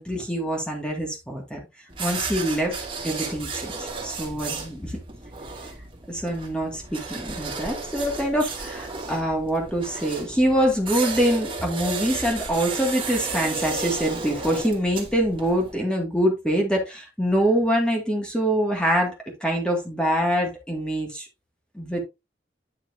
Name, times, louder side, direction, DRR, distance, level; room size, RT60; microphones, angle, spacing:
voice 1, 0.0-1.6 2.0-2.8 3.0-5.0 6.1-19.1 19.4-21.3 21.7-22.0, equal, 5° left, 2.0 m, -25 dB
sound 1, 1.9-15.7, right 4 dB, 30° right, 2.4 m, -33 dB
9.7 x 6.0 x 2.7 m
head